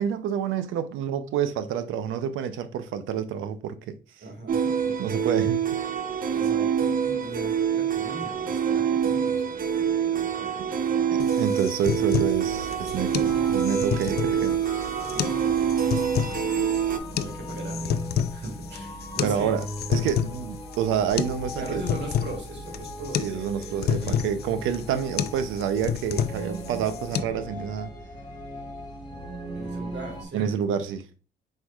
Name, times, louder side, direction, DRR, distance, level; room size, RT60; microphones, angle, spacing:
voice 1, 0.0-3.9 5.0-5.8 11.1-14.6 19.2-19.6 19.9-21.8 23.2-27.9 30.3-31.0, right 8 dB, 85° right, 0.6 m, -28 dB
voice 2, 4.2-5.1 6.3-11.2 12.7-12.8 13.8-14.5 15.1-16.3 17.1-19.6 21.6-24.3 24.5-24.7 29.5-30.7, right 2 dB, 60° right, 2.2 m, -40 dB
sound 1, 4.5-17.0, right 8 dB, 45° right, 0.6 m, -26 dB
sound 2, 11.2-27.2, left 9 dB, 55° left, 0.4 m, -30 dB
sound 3, 12.3-30.2, equal, 20° left, 1.9 m, -38 dB
4.5 x 4.5 x 2.3 m
cardioid pair, 90°, 20 cm